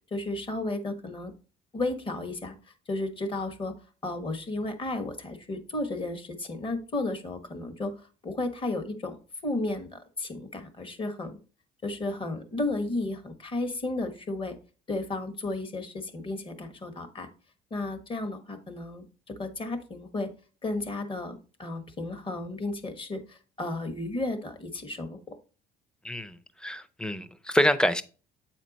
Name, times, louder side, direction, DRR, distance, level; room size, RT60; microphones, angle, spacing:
voice 1, 0.1-1.3 1.7-2.5 2.9-3.7 4.0-7.9 8.2-11.4 11.8-14.5 14.9-17.3 17.7-20.3 20.6-25.3, left 2 dB, 30° left, 1.3 m, -33 dB
voice 2, 26.0-28.0, equal, 5° left, 0.5 m, -26 dB
7.9 x 4.3 x 4.0 m
cardioid pair, 110°, 17 cm